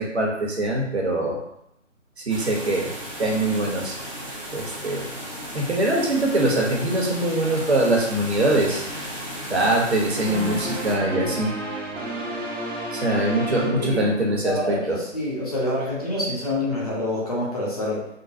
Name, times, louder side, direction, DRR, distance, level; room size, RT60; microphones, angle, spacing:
voice 1, 0.0-1.4 2.3-2.9 3.2-3.9 4.5-5.1 5.5-8.8 9.5-11.5 12.9-15.0, right 1 dB, 60° right, -1 dB, 0.9 m, -23 dB
sound 1, 2.3-11.0, equal, 25° right, 0.5 m, -35 dB
sound 2, 10.2-14.6, right 1 dB, 80° right, 0.9 m, -32 dB
voice 2, 14.4-18.1, left 1 dB, 30° left, -5 dB, 0.7 m, -27 dB
3.7 x 2.0 x 2.6 m, 0.76 s
figure-of-eight pair, 150°, 38 cm